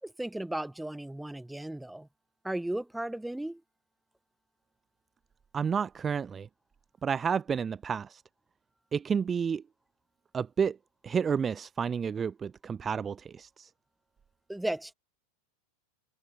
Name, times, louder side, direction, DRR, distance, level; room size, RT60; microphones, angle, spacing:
voice 1, 0.0-2.1 2.4-3.6 14.5-14.9, right 1 dB, 5° right, 4.4 m, -35 dB
voice 2, 5.5-6.5 7.0-8.2 8.9-9.6 10.3-10.8 11.0-13.7, right 6 dB, 25° right, 2.1 m, -30 dB
figure-of-eight pair, 85°, 0 cm